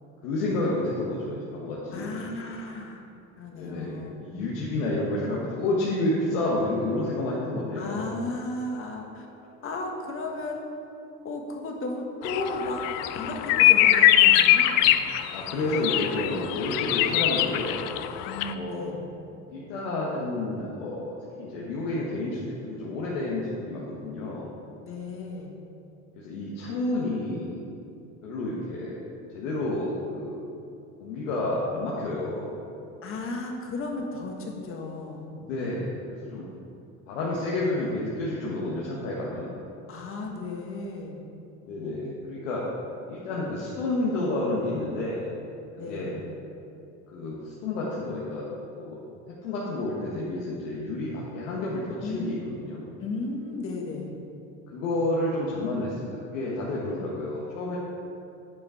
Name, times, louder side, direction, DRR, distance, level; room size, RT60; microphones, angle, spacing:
voice 1, 0.2-2.1 3.5-8.0 14.8-14.9 15.3-17.8 18.5-18.9 19.5-24.5 26.1-27.6 28.2-29.1 29.3-30.4 31.0-32.5 35.4-36.0 36.3-36.4 37.1-39.5 41.7-42.6 43.1-45.3 45.9-46.1 47.1-48.5 48.7-49.0 49.4-52.8 54.7-57.8, left 2 dB, 85° left, -5 dB, 1.4 m, -30 dB
voice 2, 1.9-3.0 3.4-4.3 7.7-9.3 9.6-10.6 11.2-12.8 13.1-14.7 18.2-19.0 24.8-25.6 33.0-35.4 39.9-41.1 45.8-46.2 52.0-52.3 53.0-54.2, left 2 dB, 35° left, 1 dB, 1.3 m, -34 dB
sound 1, 12.2-18.5, left 13 dB, 65° left, 0.5 m, -22 dB
8.6 x 5.0 x 4.8 m, 2.7 s
supercardioid pair, 110°, 38 cm